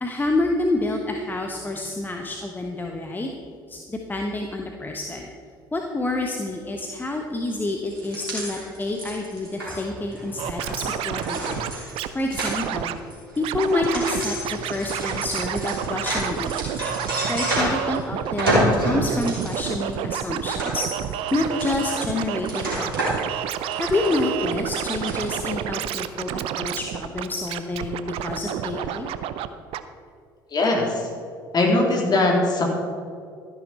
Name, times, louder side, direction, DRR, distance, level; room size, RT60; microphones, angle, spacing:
voice 1, 0.0-3.3 3.7-5.3 5.7-11.5 12.1-12.9 13.4-16.5 17.3-20.9 21.3-23.1 23.8-29.1, left 2 dB, 15° left, 2 dB, 1.1 m, -28 dB
sound 1, 7.9-18.0 18.2-25.5, right 1 dB, 85° right, 3.2 m, -29 dB
Scratching (performance technique), 10.4-12.1 12.4-13.0 13.4-14.2 14.4-29.5 29.7-29.8, right 10 dB, 55° right, 0.6 m, -29 dB
voice 2, 30.5-31.1 31.5-32.6, left 2 dB, 35° left, 0 dB, 3.1 m, -20 dB
13.0 x 10.5 x 4.2 m, 2.4 s
figure-of-eight pair, 60°, 11 cm